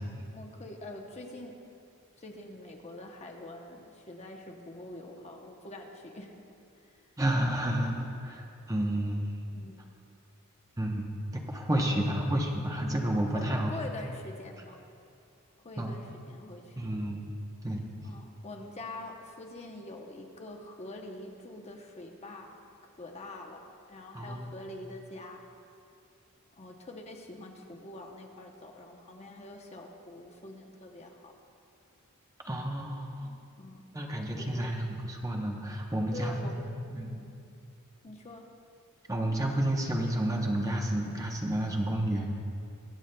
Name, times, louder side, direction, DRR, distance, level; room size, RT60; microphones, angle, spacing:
voice 1, 0.3-1.6 2.2-6.3 6.8-6.9 9.5-9.8 11.8-12.0 12.8-12.9 13.3-14.8 15.6-16.8 18.0-22.5 23.0-23.6 23.9-25.4 26.5-31.3 33.6-33.8 34.4-34.7 36.1-36.7 37.0-37.2 38.0-38.4, left 2 dB, 30° left, 2 dB, 0.8 m, -45 dB
voice 2, 7.2-9.2 10.8-11.0 11.3-13.7 15.8-15.9 16.8-17.2 17.6-17.9 24.1-24.5 32.5-33.3 33.9-37.2 39.1-42.3, right 1 dB, 15° right, 1 dB, 0.8 m, -30 dB
23.0 x 8.0 x 2.2 m, 2.5 s
head